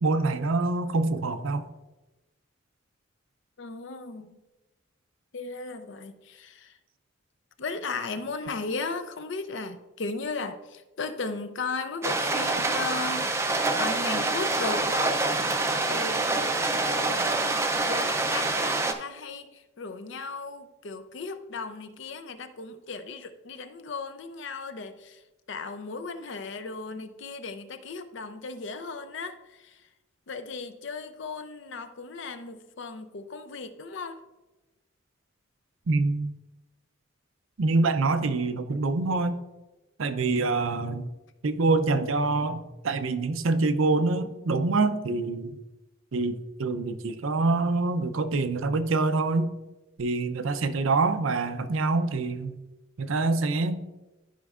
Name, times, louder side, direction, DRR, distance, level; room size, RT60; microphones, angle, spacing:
voice 1, 0.0-1.7 35.9-36.3 37.6-39.4 40.0-41.1 41.4-45.5 46.1-49.5 50.0-52.6 53.0-53.8, right 3 dB, 75° right, 10 dB, 0.5 m, -25 dB
voice 2, 3.6-4.4 5.3-6.8 7.6-13.3 13.8-15.2 15.9-25.2 25.5-29.4 30.3-34.2, left 4 dB, 60° left, 10 dB, 0.5 m, -36 dB
sound 1, 12.0-18.9, right 2 dB, 15° right, 0.4 m, -26 dB
13.0 x 5.3 x 2.4 m, 1.1 s
head